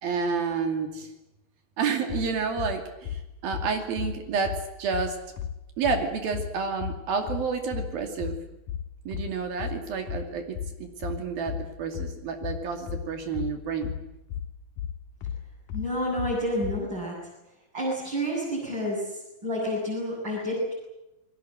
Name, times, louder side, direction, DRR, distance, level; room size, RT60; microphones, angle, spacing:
voice 1, 0.0-1.1 1.8-5.2 5.8-8.4 9.1-14.0, right 5 dB, 75° right, 5 dB, 4.4 m, -30 dB
sound 1, 2.1-16.9, left 9 dB, 70° left, 2.7 m, -34 dB
voice 2, 15.7-17.2 17.7-20.7, equal, 30° right, -6 dB, 8.7 m, -29 dB
29.5 x 21.5 x 7.8 m, 0.91 s
omnidirectional pair, 4.2 m